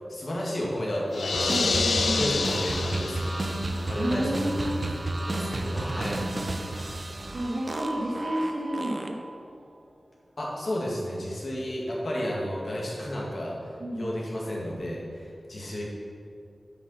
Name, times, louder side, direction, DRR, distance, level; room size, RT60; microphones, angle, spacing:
voice 1, 0.1-1.8 2.2-3.4 3.7-4.5 4.8-4.9 5.3-6.6 10.4-15.8, equal, 65° left, -4 dB, 2.0 m, -32 dB
sound 1, 1.1-3.6, left 4 dB, 85° left, 0.4 m, -27 dB
sound 2, 1.3-9.4, right 2 dB, 40° right, 0.7 m, -32 dB
voice 2, 1.5-2.3 4.0-4.9 7.3-9.2 13.8-14.1, equal, 60° right, -5 dB, 1.6 m, -31 dB
9.7 x 5.3 x 5.6 m, 2.5 s
wide cardioid pair, 75°, 0 cm